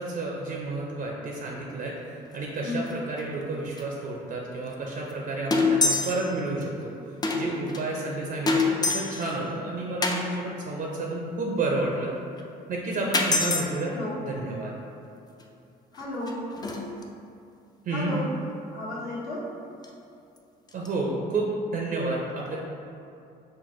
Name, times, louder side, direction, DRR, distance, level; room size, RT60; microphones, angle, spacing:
voice 1, 0.0-6.9 7.3-12.1 12.7-13.9 14.2-14.7 17.9-18.1 20.7-21.5 21.7-22.6, right 2 dB, 50° right, -2 dB, 0.5 m, -30 dB
sound 1, 2.3-2.5 2.8-2.9 3.2-3.3 3.8-3.9 4.7-4.8 5.1-5.2 5.5-6.3 6.6-6.7 7.2-7.8 8.5-9.4 10.0-10.2 12.4-12.5 13.1-13.7 15.4-15.5 15.9-17.0 18.1-18.3 19.8-19.9 20.4-20.5 20.7-20.9, left 3 dB, 20° left, 0.4 m, -26 dB
voice 2, 15.9-16.4 17.9-18.3 18.7-19.5, left 2 dB, 60° left, -7 dB, 1.2 m, -33 dB
4.1 x 2.2 x 3.1 m, 2.6 s
supercardioid pair, 65°, 19 cm